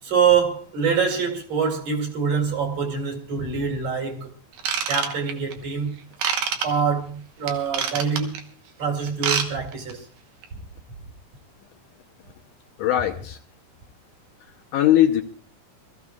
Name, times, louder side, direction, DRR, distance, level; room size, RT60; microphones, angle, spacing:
voice 1, 0.0-4.3 4.9-5.9 6.6-8.4 8.8-10.1, right 6 dB, 50° right, 3.3 m, -24 dB
Ratchet pawl / Tools, 4.6-5.5 6.2-6.7 7.5-8.4 9.1-9.5 9.7-9.9 10.4-10.5, right 7 dB, 70° right, 2.6 m, -25 dB
voice 2, 12.8-13.4 14.4-15.2, left 12 dB, 75° left, 2.3 m, -21 dB
25.0 x 14.0 x 2.4 m
omnidirectional pair, 4.1 m